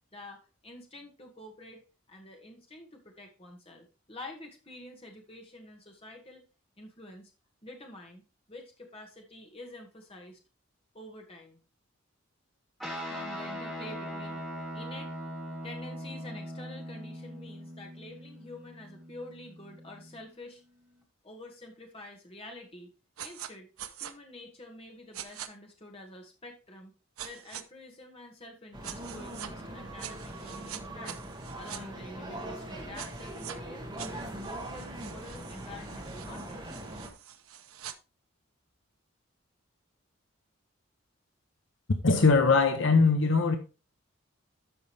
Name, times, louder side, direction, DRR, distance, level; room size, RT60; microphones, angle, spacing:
voice 1, 0.1-1.8 2.1-6.4 6.8-7.3 7.6-8.2 8.5-10.4 10.9-11.6 13.1-14.4 14.7-15.2 15.6-20.6 21.2-22.9 23.2-26.9 27.2-31.2 31.6-36.6, left 1 dB, 25° left, 1.9 m, -48 dB
Guitar, 12.8-20.4, equal, ahead, 2.0 m, -41 dB
sound 1, 23.2-23.5 23.8-24.1 25.1-25.5 27.2-27.6 28.8-29.5 30.0-31.8 32.9-33.6 34.0-37.9, right 10 dB, 85° right, 0.8 m, -44 dB
sound 2, 28.7-37.1, right 1 dB, 20° right, 1.7 m, -41 dB
voice 2, 42.0-43.6, left 4 dB, 60° left, 0.8 m, -21 dB
12.5 x 5.4 x 3.3 m
head